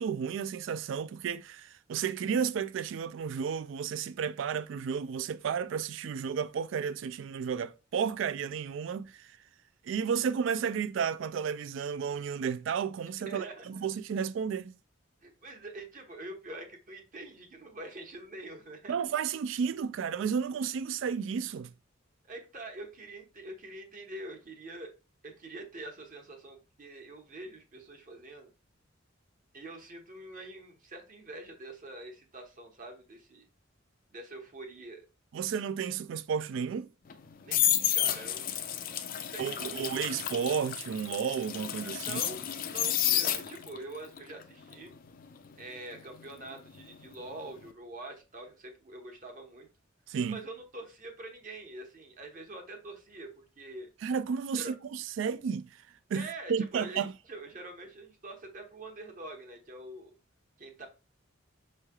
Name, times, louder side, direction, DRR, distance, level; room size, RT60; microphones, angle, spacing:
voice 1, 0.0-9.3 9.8-14.7 18.9-21.7 35.3-36.9 39.4-42.2 50.1-50.4 54.0-55.7 56.1-57.1, right 7 dB, 65° right, 0.3 m, -32 dB
voice 2, 13.3-13.9 15.2-18.9 22.3-24.9 25.2-28.5 29.5-33.4 34.1-35.0 37.4-38.8 39.1-39.9 42.0-42.4 42.7-44.9 45.6-49.7 50.3-53.9 54.6-54.7 56.1-60.1 60.6-60.9, right 2 dB, 40° right, 1.0 m, -45 dB
sound 1, 37.1-43.8 44.2-47.1 47.3-47.7, left 11 dB, 45° left, 0.4 m, -31 dB
5.5 x 3.2 x 2.3 m
head